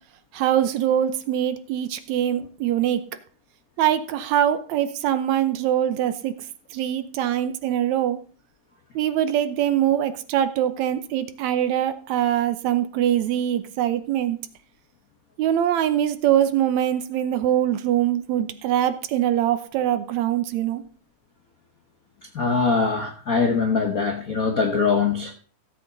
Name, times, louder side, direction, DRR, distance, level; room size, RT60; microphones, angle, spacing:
voice 1, 0.3-3.0 3.8-6.3 6.7-8.2 9.0-14.4 15.4-20.8, right 11 dB, 75° right, 11 dB, 2.0 m, -23 dB
voice 2, 22.3-25.3, left 5 dB, 65° left, 3 dB, 0.8 m, -22 dB
16.0 x 7.8 x 3.9 m, 0.42 s
omnidirectional pair, 3.5 m